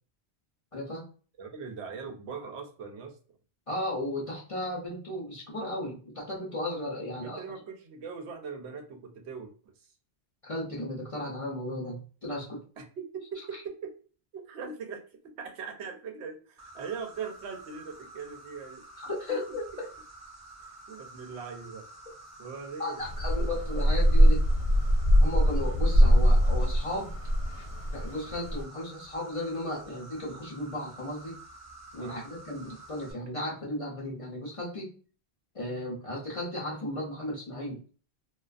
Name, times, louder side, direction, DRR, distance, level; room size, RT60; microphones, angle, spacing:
voice 1, 0.7-1.0 3.7-7.4 10.4-12.6 19.0-19.9 22.8-24.4 25.2-27.1 27.9-31.4 31.9-34.9 35.5-37.8, left 1 dB, 40° left, -4 dB, 0.5 m, -35 dB
voice 2, 1.4-3.2 7.1-9.5 9.8-9.9 12.8-13.9 14.3-15.0 15.4-18.8 20.9-21.8 22.4-23.0 32.0-32.3, right 5 dB, 85° right, 4 dB, 0.9 m, -40 dB
Insect, 16.6-33.1, right 2 dB, 20° right, 0.5 m, -50 dB
sound 1, 23.0-28.6, equal, 70° left, 0.8 m, -22 dB
2.4 x 2.2 x 2.3 m, 0.40 s
omnidirectional pair, 1.1 m